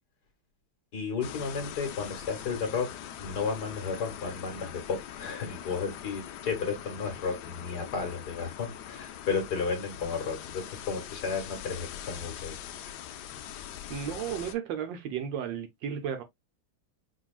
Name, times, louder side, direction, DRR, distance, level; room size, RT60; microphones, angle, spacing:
voice 1, 0.9-2.9 3.2-12.6, left 5 dB, 55° left, 1.7 m, -33 dB
sound 1, 1.2-14.5, left 10 dB, 75° left, 0.9 m, -42 dB
voice 2, 13.9-16.2, right 8 dB, 70° right, 1.2 m, -34 dB
5.1 x 2.9 x 2.3 m
omnidirectional pair, 2.3 m